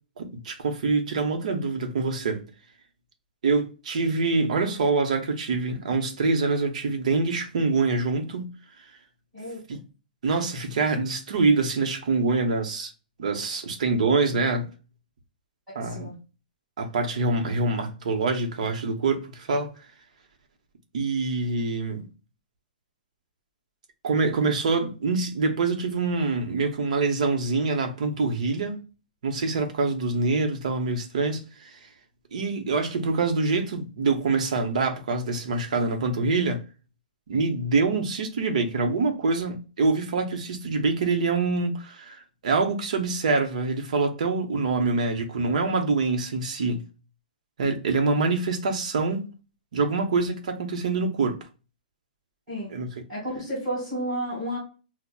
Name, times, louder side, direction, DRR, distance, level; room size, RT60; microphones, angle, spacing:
voice 1, 0.2-2.4 3.4-8.5 9.7-9.8 10.2-12.9 13.2-14.7 15.7-16.1 16.8-19.7 20.9-22.1 24.0-28.8 29.2-31.9 32.3-36.6 37.3-46.8 47.6-49.3 49.7-51.4 52.7-53.0, right 3 dB, 50° right, 0.8 m, -25 dB
voice 2, 15.8-16.1 52.5-52.7 53.1-54.6, equal, 5° right, 2.0 m, -31 dB
5.6 x 2.1 x 2.3 m
hypercardioid pair, 180°, 5 cm